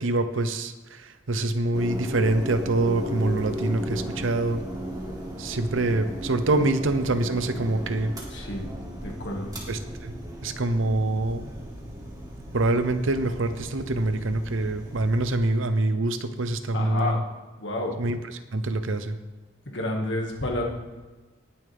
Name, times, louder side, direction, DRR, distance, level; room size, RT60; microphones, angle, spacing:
voice 1, 0.0-4.6 5.4-8.1 9.7-10.1 10.4-11.5 12.5-17.2 18.0-18.2 18.5-19.2, right 2 dB, 85° right, 10 dB, 0.8 m, -25 dB
sound 1, 1.7-15.3, equal, 20° right, 1.9 m, -36 dB
voice 2, 8.3-8.7 9.0-9.5 16.7-17.2 17.6-18.0 19.7-20.6, left 1 dB, 60° left, 0 dB, 1.9 m, -30 dB
19.0 x 7.1 x 3.5 m, 1.2 s
head